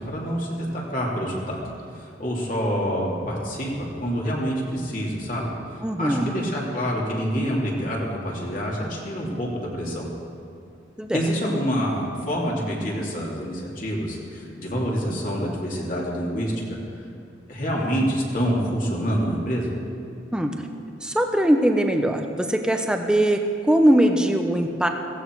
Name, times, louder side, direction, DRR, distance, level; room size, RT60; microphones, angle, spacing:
voice 1, 0.0-1.6 2.0-5.5 6.0-10.1 11.1-16.8 17.5-19.7, equal, 45° left, -3 dB, 2.9 m, -27 dB
voice 2, 5.8-6.3 11.0-11.2 20.3-20.5 21.0-23.4 23.6-24.9, right 1 dB, 5° right, 4 dB, 0.9 m, -21 dB
16.5 x 16.0 x 4.8 m, 2.5 s
head